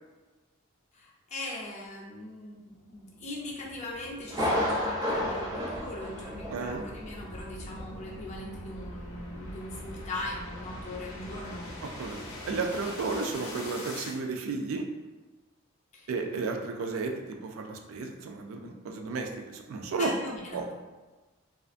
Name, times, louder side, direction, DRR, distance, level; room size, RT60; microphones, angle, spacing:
voice 1, 0.9-11.7 15.9-16.1 20.0-20.7, left 1 dB, 35° left, -3 dB, 0.5 m, -40 dB
sound 1, 2.7-14.2, left 1 dB, 85° left, 0.6 m, -44 dB
Thunder, 4.3-6.9 7.1-7.2 7.8-7.9, left 1 dB, 15° right, 0.5 m, -30 dB
voice 2, 6.5-6.8 12.0-14.8 16.1-17.1 17.4-20.1 20.5-20.7, right 4 dB, 75° right, 3 dB, 0.4 m, -33 dB
2.4 x 2.4 x 2.4 m, 1.2 s
head